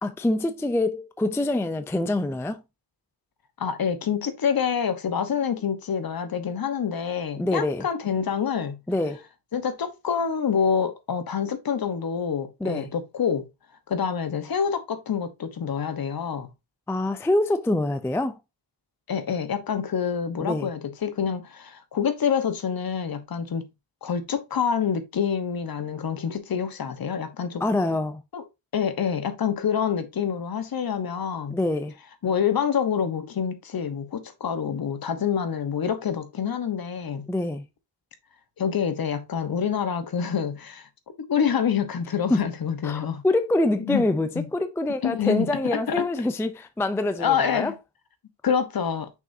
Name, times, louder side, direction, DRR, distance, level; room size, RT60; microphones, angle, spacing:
voice 1, 0.0-2.6 7.4-7.9 8.9-9.2 12.6-12.9 16.9-18.4 20.4-20.7 27.6-28.2 31.5-31.9 37.3-37.6 42.3-42.4 42.8-47.7, left 2 dB, 5° left, 0.4 m, -25 dB
voice 2, 3.6-8.8 9.5-13.5 13.9-16.5 19.1-23.7 24.0-27.7 28.3-28.4 28.7-31.6 32.2-37.3 38.6-40.9 41.2-43.2 43.8-44.0 44.3-44.5 45.0-45.5 45.7-46.1 47.2-47.7 48.4-49.1, left 7 dB, 50° left, 1.2 m, -27 dB
6.2 x 5.8 x 2.7 m
wide cardioid pair, 115°, 46 cm